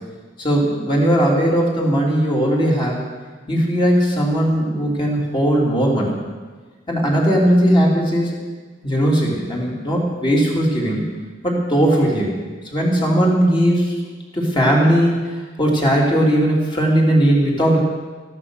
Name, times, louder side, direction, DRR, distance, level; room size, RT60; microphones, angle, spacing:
voice 1, 0.4-3.1 3.5-6.2 6.9-8.3 8.8-11.0 11.4-12.4 12.7-13.9 14.3-17.8, equal, 25° left, -3 dB, 3.3 m, -18 dB
14.5 x 11.5 x 6.5 m, 1.4 s
head